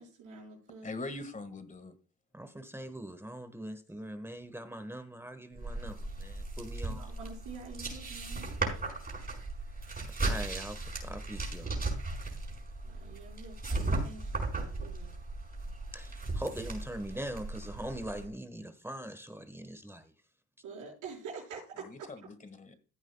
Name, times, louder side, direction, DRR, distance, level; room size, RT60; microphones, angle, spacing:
voice 1, 0.0-0.9 6.9-8.5 12.8-15.2 20.6-22.1, right 5 dB, 85° right, 5.1 m, -47 dB
voice 2, 0.8-1.9 21.8-22.7, left 2 dB, 25° left, 1.6 m, -42 dB
voice 3, 2.3-7.1 10.2-11.8 15.9-20.1, right 1 dB, 10° right, 1.1 m, -42 dB
sound 1, 5.6-18.3, right 2 dB, 30° right, 5.0 m, -37 dB
15.0 x 9.1 x 2.2 m
cardioid pair, 90°, 30 cm